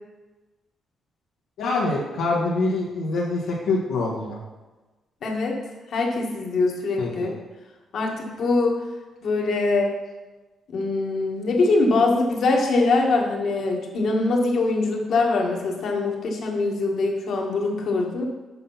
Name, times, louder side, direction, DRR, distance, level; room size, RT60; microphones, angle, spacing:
voice 1, 1.6-4.4 7.0-7.3, left 3 dB, 90° left, -5 dB, 1.4 m, -25 dB
voice 2, 5.2-5.5 5.9-7.4 7.9-8.8 9.2-9.9 10.7-18.2, left 3 dB, 65° left, 0 dB, 1.7 m, -23 dB
7.7 x 5.8 x 5.7 m, 1.2 s
cardioid pair, 100°, 0 cm